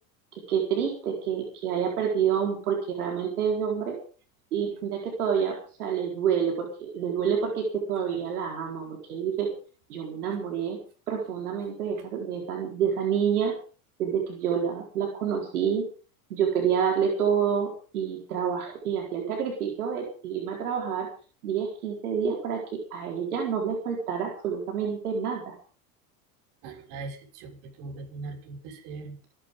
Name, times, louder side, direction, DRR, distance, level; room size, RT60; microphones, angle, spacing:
voice 1, 0.3-4.0 4.5-9.5 9.9-10.8 11.1-13.5 14.0-15.8 16.3-21.1 21.4-25.6, right 7 dB, 90° right, -1 dB, 4.5 m, -28 dB
voice 2, 26.6-29.2, right 3 dB, 65° right, 2 dB, 6.4 m, -40 dB
27.0 x 11.5 x 3.8 m, 0.39 s
hypercardioid pair, 95°, 43 cm